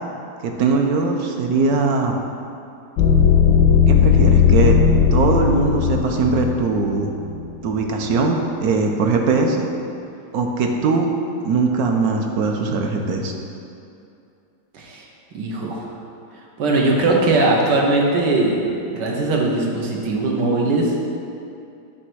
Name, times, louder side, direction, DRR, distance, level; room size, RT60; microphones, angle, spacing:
voice 1, 0.4-2.1 3.9-4.7 5.1-7.1 7.6-9.7 10.3-11.1 11.4-13.3, right 4 dB, 70° right, 2 dB, 1.1 m, -20 dB
sound 1, 3.0-7.5, left 7 dB, 90° left, 1.2 m, -16 dB
voice 2, 14.7-15.0 15.3-15.9 16.6-20.9, right 2 dB, 90° right, -1 dB, 1.6 m, -20 dB
8.3 x 3.3 x 6.1 m, 2.6 s
omnidirectional pair, 1.8 m